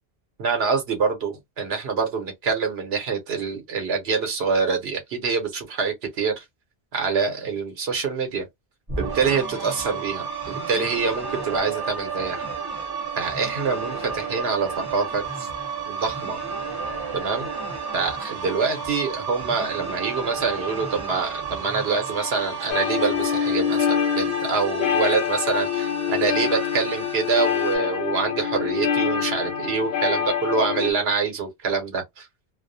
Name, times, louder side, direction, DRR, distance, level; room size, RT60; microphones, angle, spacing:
voice 1, 0.4-6.4 6.9-8.5 9.0-12.5 13.2-15.5 15.9-16.4 17.1-17.5 17.9-32.3, right 5 dB, 85° right, 0.9 m, -25 dB
sound 1, 8.9-27.8, right 5 dB, 25° right, 0.7 m, -32 dB
sound 2, 22.7-30.9, left 8 dB, 75° left, 0.9 m, -25 dB
2.3 x 2.1 x 2.5 m
omnidirectional pair, 1.0 m